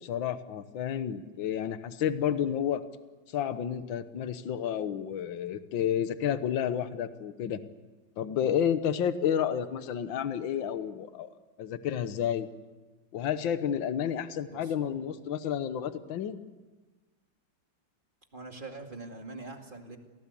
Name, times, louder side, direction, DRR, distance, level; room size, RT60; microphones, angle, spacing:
voice 1, 0.0-2.8 3.3-7.6 8.2-11.3 11.6-12.5 13.1-16.4, left 9 dB, 75° left, 11 dB, 1.8 m, -30 dB
voice 2, 14.5-15.0 18.3-20.0, right 3 dB, 25° right, 3 dB, 2.5 m, -43 dB
27.5 x 18.5 x 8.5 m, 1.3 s
omnidirectional pair, 2.1 m